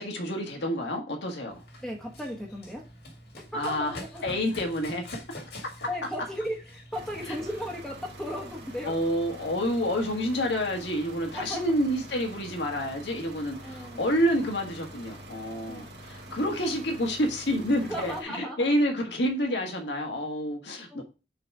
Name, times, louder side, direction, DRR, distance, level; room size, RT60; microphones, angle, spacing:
voice 1, 0.0-1.6 3.5-4.0 4.2-5.0 7.3-7.4 8.8-21.0, equal, 85° left, 2 dB, 1.7 m, -28 dB
Run, 1.5-7.5, left 1 dB, 65° left, 2.0 m, -45 dB
voice 2, 1.8-2.8 3.4-4.2 5.9-8.9 11.3-11.8 13.6-14.1 15.6-15.9 16.3-16.5 17.8-18.7 20.9-21.0, equal, 5° left, 0 dB, 1.1 m, -36 dB
sound 1, 6.9-18.2, right 1 dB, 70° right, 1.8 m, -45 dB
6.8 x 4.0 x 4.8 m, 0.31 s
head